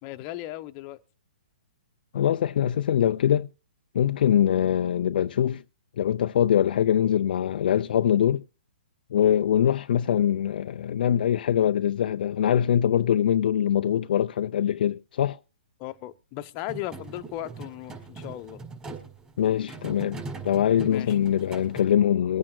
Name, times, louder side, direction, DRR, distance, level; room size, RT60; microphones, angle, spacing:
voice 1, 0.0-1.0 15.8-18.6 20.9-21.4, left 15 dB, 30° left, 0.9 m, -37 dB
voice 2, 2.1-3.5 3.9-5.6 6.0-8.4 9.1-15.4 19.4-22.4, left 10 dB, 60° left, 0.4 m, -23 dB
sound 1, 16.7-21.8, right 4 dB, 15° right, 4.9 m, -40 dB
23.5 x 8.8 x 2.2 m
hypercardioid pair, 145°, 5 cm